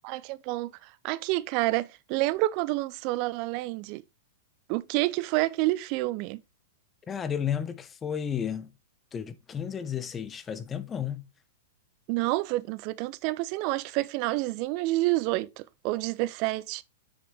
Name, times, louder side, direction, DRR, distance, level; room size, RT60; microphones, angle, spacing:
voice 1, 0.0-4.0 4.7-6.4 12.1-16.8, right 19 dB, 45° right, 0.4 m, -28 dB
voice 2, 7.1-8.7 9.1-11.3, left 8 dB, 20° left, 1.0 m, -32 dB
7.6 x 6.6 x 3.3 m
figure-of-eight pair, 105°, 0 cm